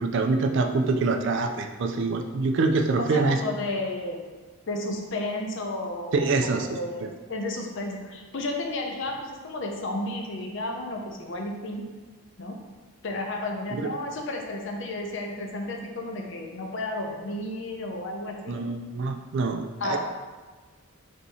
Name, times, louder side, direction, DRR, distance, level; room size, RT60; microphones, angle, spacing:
voice 1, 0.0-3.4 6.1-6.7 7.0-7.1 13.7-13.9 18.5-20.0, right 3 dB, 55° right, 4 dB, 0.3 m, -25 dB
voice 2, 3.0-4.2 4.7-11.8 12.4-12.6 13.0-18.6 19.8-20.0, left 2 dB, 55° left, 2 dB, 0.5 m, -32 dB
3.6 x 2.7 x 4.0 m, 1.4 s
head